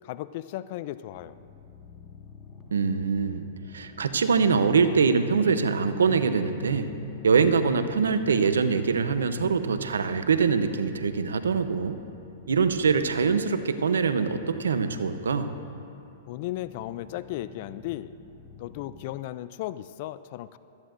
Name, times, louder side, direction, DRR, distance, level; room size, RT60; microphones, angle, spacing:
voice 1, 0.0-1.4 16.3-18.1 18.6-20.6, left 14 dB, 55° left, 15 dB, 0.3 m, -35 dB
sound 1, 1.2-19.0, left 4 dB, 20° left, 1.7 m, -50 dB
voice 2, 2.7-3.5 3.7-6.9 7.2-12.0 12.5-15.5, right 5 dB, 85° right, 10 dB, 0.7 m, -23 dB
Drum, 4.4-9.9, equal, 90° left, 1.2 m, -42 dB
17.0 x 13.5 x 2.6 m, 2.8 s
hypercardioid pair, 120°, 0 cm